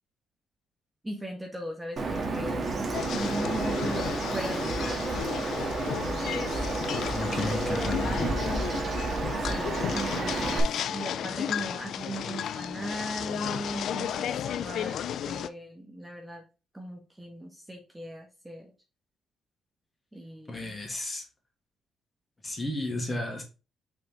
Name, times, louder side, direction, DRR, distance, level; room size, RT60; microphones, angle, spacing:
voice 1, 1.0-2.6 3.2-5.1 5.8-6.6 7.4-8.1 9.3-16.4 16.7-18.7 20.1-20.8, equal, 10° right, 1.4 m, -38 dB
Bird vocalization bird call bird song, 2.0-10.6, right 3 dB, 45° right, 1.9 m, -31 dB
sound 1, 2.9-15.5, left 9 dB, 70° left, 0.5 m, -34 dB
voice 2, 7.1-8.3 20.5-21.2 22.4-23.4, left 2 dB, 25° left, 2.5 m, -33 dB
6.1 x 4.2 x 3.7 m
cardioid pair, 90°, 0 cm